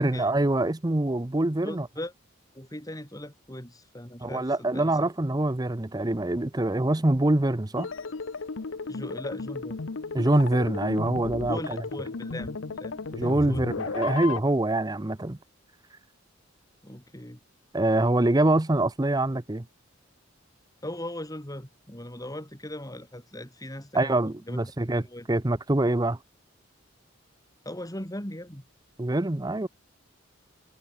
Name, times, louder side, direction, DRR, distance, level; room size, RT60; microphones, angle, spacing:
voice 1, 0.0-1.9 4.2-7.9 10.1-11.8 13.1-15.4 17.7-19.6 23.9-26.2 29.0-29.7, right 2 dB, 20° right, 0.7 m, -25 dB
voice 2, 1.6-2.1 2.5-5.1 8.8-9.8 11.5-13.9 16.8-17.4 20.8-24.6 25.0-25.3 27.6-28.6, left 1 dB, 20° left, 4.9 m, -39 dB
sound 1, 7.8-14.4, left 4 dB, 75° left, 0.8 m, -34 dB
head